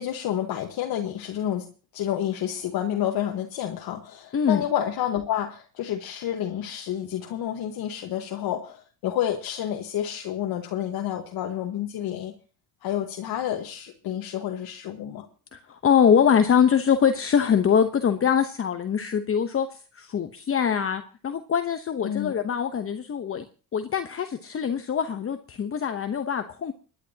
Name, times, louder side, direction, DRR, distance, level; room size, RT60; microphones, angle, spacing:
voice 1, 0.0-1.7 1.9-12.3 12.8-15.3 22.0-22.4, left 10 dB, 70° left, 2 dB, 1.5 m, -29 dB
voice 2, 4.3-4.6 15.5-23.4 23.7-26.7, left 7 dB, 35° left, 7 dB, 1.0 m, -23 dB
28.0 x 10.5 x 2.9 m, 0.36 s
cardioid pair, 95°, 38 cm